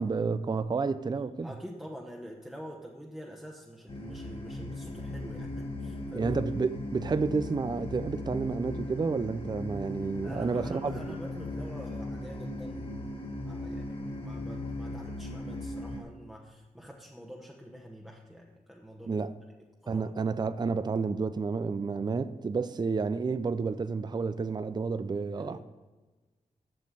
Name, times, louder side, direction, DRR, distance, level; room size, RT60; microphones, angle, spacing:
voice 1, 0.0-1.5 6.1-10.9 19.1-19.3 19.9-25.6, right 4 dB, 30° right, 0.4 m, -30 dB
voice 2, 1.4-6.3 10.2-19.2 19.8-20.1 25.3-25.6, equal, 5° right, 1.1 m, -46 dB
sound 1, 3.9-16.0, left 1 dB, 40° left, 1.4 m, -38 dB
7.6 x 6.6 x 7.3 m
cardioid pair, 75°, 14 cm